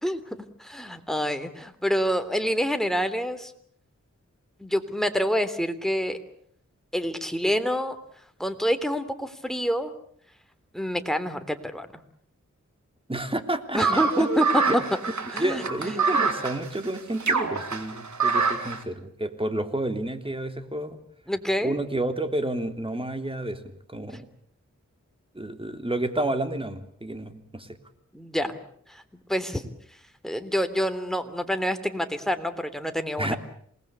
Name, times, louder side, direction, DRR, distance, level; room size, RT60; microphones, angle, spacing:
voice 1, 0.0-3.5 4.6-6.2 6.9-8.0 8.4-9.9 10.7-11.9 13.7-14.8 15.3-16.3 21.3-21.7 28.1-28.6 28.9-29.0 29.3-29.7 30.2-33.4, equal, ahead, 8 dB, 3.3 m, -27 dB
voice 2, 13.1-14.3 14.6-14.8 15.4-21.0 21.6-24.3 25.3-27.8 33.2-33.4, right 1 dB, 20° right, 7 dB, 3.2 m, -30 dB
sound 1, 13.8-18.8, right 4 dB, 75° right, 3.1 m, -25 dB
28.0 x 20.0 x 8.4 m, 0.62 s
cardioid pair, 55°, 30 cm